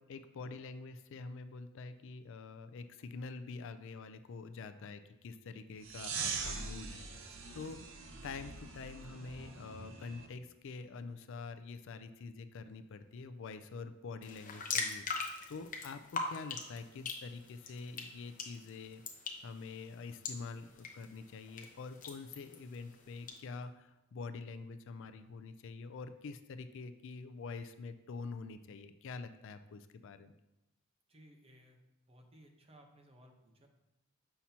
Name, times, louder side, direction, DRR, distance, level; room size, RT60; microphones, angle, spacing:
voice 1, 0.0-7.1 7.5-15.0 15.5-19.0 19.4-30.3, left 4 dB, 65° left, 11 dB, 0.4 m, -46 dB
sound 1, 5.8-10.3, right 4 dB, 65° right, 0.7 m, -42 dB
sound 2, 14.2-23.4, left 4 dB, 40° left, 0.8 m, -43 dB
voice 2, 31.1-31.8 32.1-33.7, right 1 dB, 30° right, 2 dB, 0.9 m, -60 dB
7.3 x 5.7 x 2.8 m, 0.96 s
head